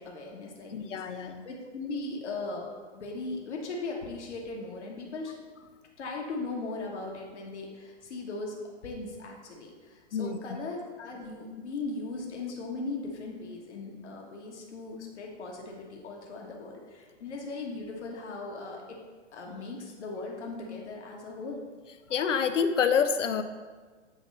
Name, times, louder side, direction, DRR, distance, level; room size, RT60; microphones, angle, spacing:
voice 1, 0.0-5.4 6.0-19.0 19.3-21.6, left 3 dB, 70° left, 0 dB, 1.4 m, -38 dB
voice 2, 0.7-1.4 10.1-10.4 22.1-23.4, left 6 dB, 85° left, 10 dB, 0.6 m, -27 dB
8.8 x 3.0 x 4.1 m, 1.4 s
hypercardioid pair, 120°, 36 cm